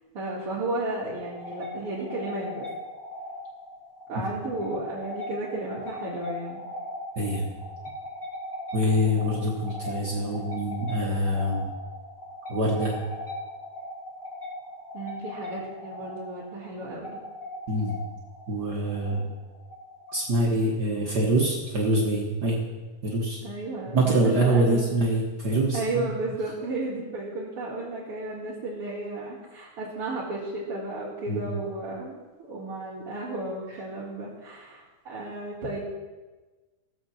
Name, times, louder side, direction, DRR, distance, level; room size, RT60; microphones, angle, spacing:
voice 1, 0.1-2.7 4.1-6.6 14.9-17.1 19.1-19.3 23.4-24.9 25.7-35.8, right 2 dB, 45° right, -7 dB, 2.6 m, -33 dB
sound 1, 1.1-20.5, left 1 dB, 15° left, 2.9 m, -39 dB
voice 2, 8.7-11.7 12.5-12.9 17.7-18.0 18.5-19.3 20.1-22.6 23.0-23.4 23.9-26.1 31.3-31.5, right 1 dB, 65° right, -3 dB, 1.0 m, -25 dB
16.0 x 7.2 x 7.2 m, 1.3 s
omnidirectional pair, 4.1 m